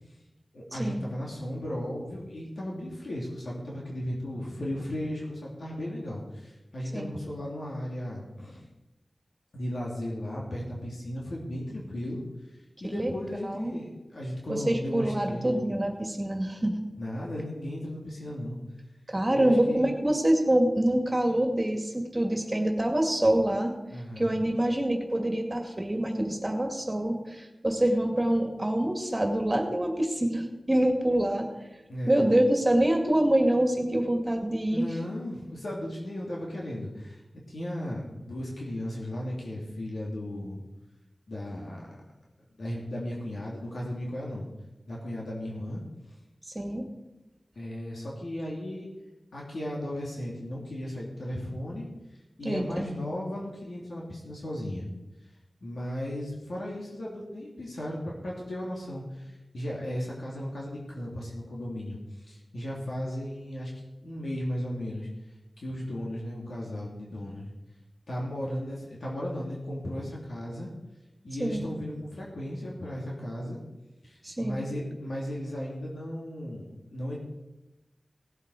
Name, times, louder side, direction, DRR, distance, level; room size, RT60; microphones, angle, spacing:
voice 1, 0.5-8.6 9.5-12.2 12.8-15.5 17.0-18.6 19.3-19.8 23.9-24.4 31.9-32.3 34.7-37.2 37.5-40.6 41.3-41.9 42.6-44.5 44.8-45.8 47.6-48.9 49.3-51.9 52.4-54.9 55.6-65.1 65.6-67.5 68.1-70.7 71.2-73.6 74.0-77.2, left 1 dB, 75° left, -4 dB, 2.8 m, -35 dB
voice 2, 13.4-13.8 14.5-16.8 19.1-23.7 24.2-31.5 32.1-34.9 46.6-46.9 52.4-52.9 71.4-71.7 74.2-74.6, right 1 dB, 25° right, 3 dB, 2.1 m, -26 dB
17.5 x 7.6 x 4.8 m, 1.0 s
wide cardioid pair, 65°, 0 cm